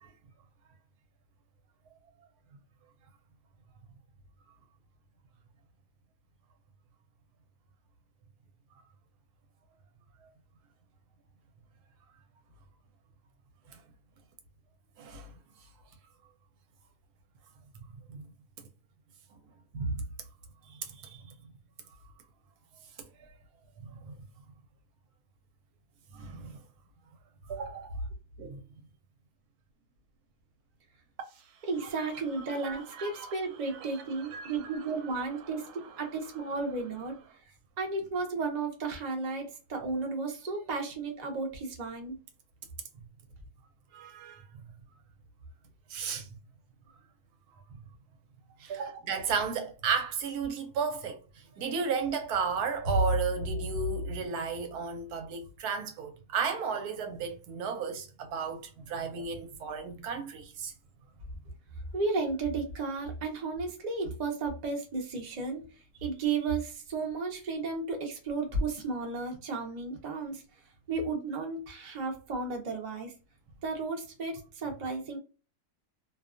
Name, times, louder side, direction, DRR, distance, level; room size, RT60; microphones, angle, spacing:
voice 1, 15.0-15.3 18.1-18.2 19.7-20.0 20.7-21.3 23.2-23.3 23.8-24.1 26.1-26.6 27.5-28.0 28.4-28.6 32.0-32.1 32.5-33.3 33.7-34.8 43.9-44.4 45.9-46.4 47.8-47.9 48.6-51.2 51.6-60.7, right 4 dB, 75° right, 1.1 m, -33 dB
voice 2, 31.6-35.7 36.0-37.2 37.8-42.2 51.5-51.7 61.9-65.6 66.0-70.4 70.9-73.1 73.6-75.2, right 3 dB, 45° right, 0.5 m, -33 dB
2.7 x 2.2 x 2.4 m
omnidirectional pair, 1.7 m